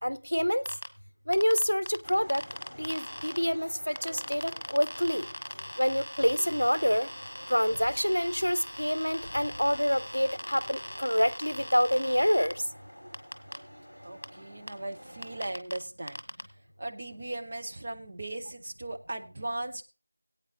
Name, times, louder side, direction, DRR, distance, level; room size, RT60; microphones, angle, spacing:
voice 1, 0.0-0.7 1.3-2.4 2.8-5.2 5.8-7.1 7.5-12.5, equal, 70° left, 0.6 m, -27 dB
sound 1, 0.7-0.9 1.3-3.4 4.0-12.5 13.1-13.6 14.2-14.3 14.7-14.8 15.2-15.8 16.1-16.4, equal, 55° left, 1.4 m, -40 dB
sound 2, 2.0-15.5, equal, 5° left, 5.2 m, -49 dB
voice 2, 14.0-16.2 16.8-19.8, right 2 dB, 15° right, 0.5 m, -38 dB
20.0 x 8.8 x 2.9 m
figure-of-eight pair, 175°, 0 cm